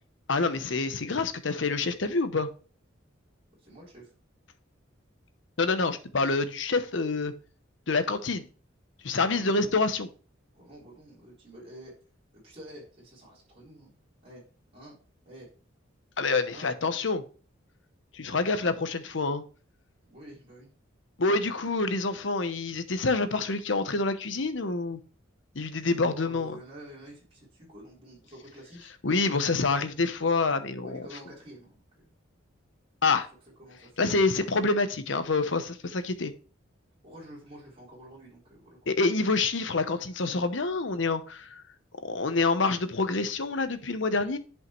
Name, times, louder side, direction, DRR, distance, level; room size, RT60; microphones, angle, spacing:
voice 1, 0.3-2.5 5.6-7.3 7.9-8.5 9.0-10.1 16.2-17.2 18.1-19.4 21.2-25.0 25.5-26.6 29.0-31.0 33.0-33.3 34.0-36.3 38.9-41.6 42.0-44.4, left 3 dB, 65° left, 0.9 m, -27 dB
voice 2, 3.6-4.1 9.2-9.9 10.5-11.9 12.3-13.9 14.2-14.4 14.7-15.0 15.3-15.5 16.5-16.7 18.2-18.5 20.1-20.7 26.0-28.9 30.8-32.2 33.6-34.7 37.0-38.9, right 1 dB, 30° right, 4.0 m, -48 dB
11.0 x 5.5 x 3.1 m
head